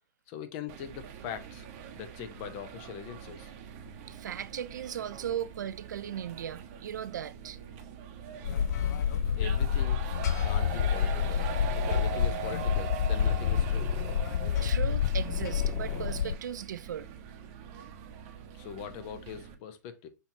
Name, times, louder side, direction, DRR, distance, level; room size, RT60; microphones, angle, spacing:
voice 1, 0.3-1.7 1.9-3.5 9.4-10.0 10.4-11.4 11.7-13.9 18.5-20.1, left 8 dB, 40° left, 0.7 m, -42 dB
sound 1, 0.7-19.5, right 9 dB, 40° right, 0.8 m, -43 dB
voice 2, 4.1-7.6 14.4-17.1, right 9 dB, 75° right, 0.4 m, -37 dB
sound 2, 8.4-16.3, left 8 dB, 65° left, 0.4 m, -28 dB
Purr, 11.2-16.7, right 5 dB, 15° right, 0.9 m, -48 dB
5.5 x 3.0 x 2.7 m
hypercardioid pair, 125°, 10 cm